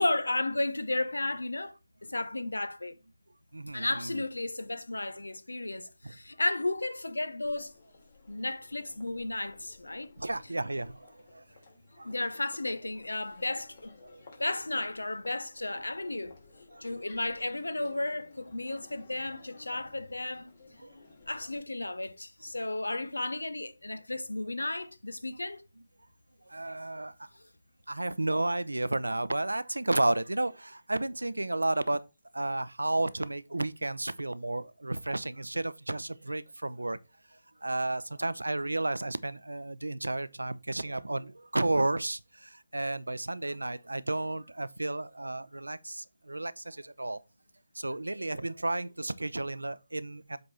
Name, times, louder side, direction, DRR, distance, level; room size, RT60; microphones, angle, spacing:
voice 1, 0.0-1.7 2.0-2.9 3.7-7.7 8.3-10.1 12.0-14.0 14.4-16.4 16.8-20.5 21.3-25.6, left 2 dB, 85° left, 0.7 m, -33 dB
voice 2, 3.5-4.2 10.2-11.4 12.0-12.1 14.0-14.2 16.7-17.0 20.8-20.9 26.5-27.1 27.9-32.0 32.3-37.0 37.6-47.2 47.7-50.4, right 2 dB, 90° right, 0.6 m, -32 dB
Crowd, 7.4-21.6, left 3 dB, 45° left, 2.9 m, -56 dB
7.8 x 3.5 x 4.2 m
figure-of-eight pair, 150°, 0 cm